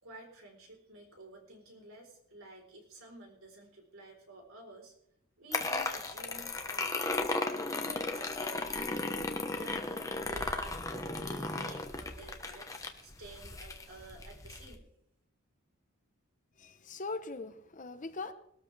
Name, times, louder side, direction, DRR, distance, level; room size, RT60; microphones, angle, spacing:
voice 1, 0.0-4.9 5.4-7.3 7.8-9.2 9.5-9.9 10.3-14.9, right 1 dB, 70° right, 4.2 m, -51 dB
sound 1, 5.5-14.8, left 2 dB, 15° left, 1.1 m, -35 dB
voice 2, 16.6-18.3, left 3 dB, 35° left, 0.9 m, -40 dB
20.5 x 13.0 x 3.4 m
head